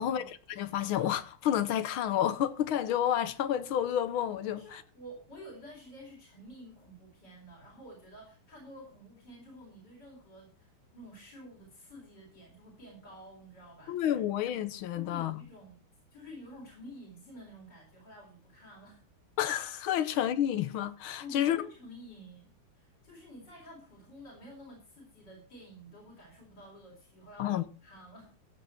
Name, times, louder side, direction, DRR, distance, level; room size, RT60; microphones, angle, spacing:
voice 1, 0.0-4.8 13.9-15.4 19.4-21.6 27.4-27.6, left 10 dB, 70° left, 1.6 m, -30 dB
voice 2, 4.6-14.2 14.9-15.8 16.1-19.0 20.0-20.1 21.2-28.3, equal, 50° left, 4.7 m, -50 dB
15.0 x 8.2 x 4.4 m
omnidirectional pair, 2.4 m